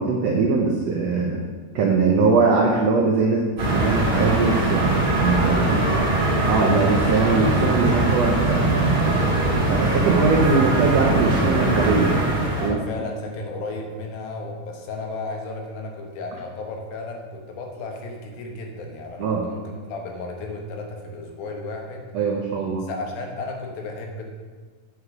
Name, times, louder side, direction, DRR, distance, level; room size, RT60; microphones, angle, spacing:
voice 1, 0.0-1.4 1.7-5.8 6.5-12.1 12.6-12.8 19.2-19.4 22.1-22.9, right 4 dB, 85° right, -1 dB, 1.4 m, -21 dB
sound 1, 3.6-12.7, right 2 dB, 35° right, 1.6 m, -21 dB
voice 2, 5.4-6.2 12.6-19.6 19.9-22.1 22.8-24.3, left 3 dB, 75° left, 2 dB, 3.0 m, -34 dB
8.4 x 8.4 x 4.8 m, 1.5 s
omnidirectional pair, 4.3 m